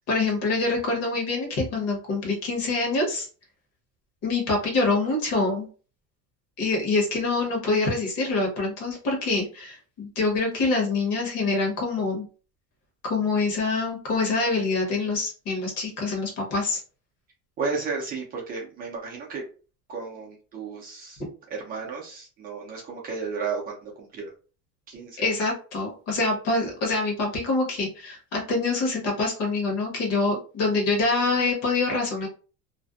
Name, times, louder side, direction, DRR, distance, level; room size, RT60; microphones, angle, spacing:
voice 1, 0.1-3.3 4.2-5.7 6.6-12.3 13.0-16.8 25.2-32.3, left 3 dB, 50° left, 1 dB, 1.0 m, -25 dB
voice 2, 17.6-19.4 19.9-21.2 21.5-24.3 24.9-25.2, right 4 dB, 30° right, -2 dB, 0.4 m, -33 dB
2.5 x 2.1 x 2.3 m, 0.37 s
cardioid pair, 175°, 33 cm